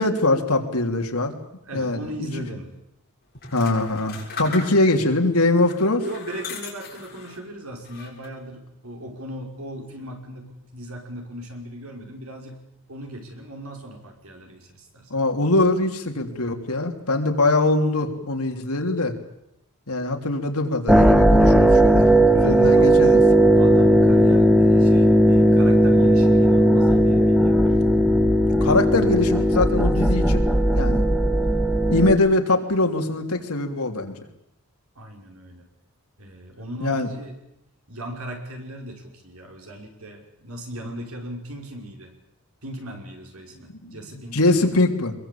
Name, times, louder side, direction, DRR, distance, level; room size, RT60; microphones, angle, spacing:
voice 1, 0.0-1.3 1.7-2.3 3.5-6.0 15.1-19.1 19.9-23.2 28.6-30.4 30.7-31.1 31.9-34.2 36.8-37.1 43.8-44.0 44.3-45.1, left 2 dB, 80° left, 4 dB, 3.3 m, -22 dB
voice 2, 1.7-2.7 6.0-12.6 12.9-15.1 22.0-23.2 23.5-27.6 35.0-35.7 36.2-37.3 37.9-42.1 42.6-44.7, equal, 70° right, 3 dB, 5.6 m, -38 dB
sound 1, 3.3-5.1 5.6-7.4 7.8-8.5, left 4 dB, 45° left, 7.3 m, -38 dB
sound 2, 20.9-32.1, right 1 dB, ahead, 1.2 m, -16 dB
24.0 x 22.5 x 8.6 m, 0.82 s
head